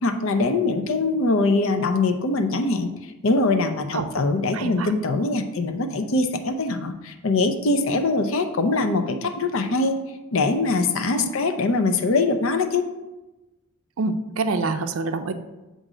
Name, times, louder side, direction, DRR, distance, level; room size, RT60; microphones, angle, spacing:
voice 1, 0.0-2.9 3.2-10.0 10.3-12.9, left 3 dB, 65° left, 7 dB, 0.6 m, -22 dB
voice 2, 4.5-4.9 11.1-11.3 14.0-15.3, right 3 dB, 70° right, 9 dB, 0.5 m, -26 dB
7.5 x 2.6 x 4.9 m, 1.0 s
head